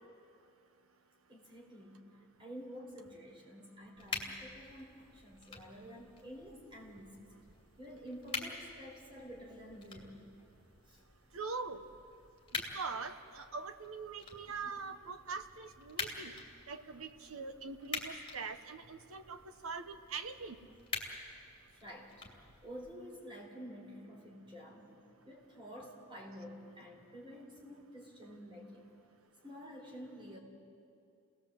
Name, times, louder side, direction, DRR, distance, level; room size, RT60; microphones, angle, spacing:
voice 1, 1.3-7.3 7.8-10.2 10.9-11.0 14.5-14.8 21.7-22.2 22.6-28.9 29.4-30.4, equal, 25° right, 0 dB, 4.3 m, -50 dB
sound 1, 4.0-22.9, left 4 dB, 25° left, 2.7 m, -47 dB
voice 2, 11.3-11.8 12.5-16.3 16.7-20.6, right 4 dB, 80° right, 8 dB, 1.3 m, -43 dB
29.0 x 18.5 x 7.7 m, 2.5 s
head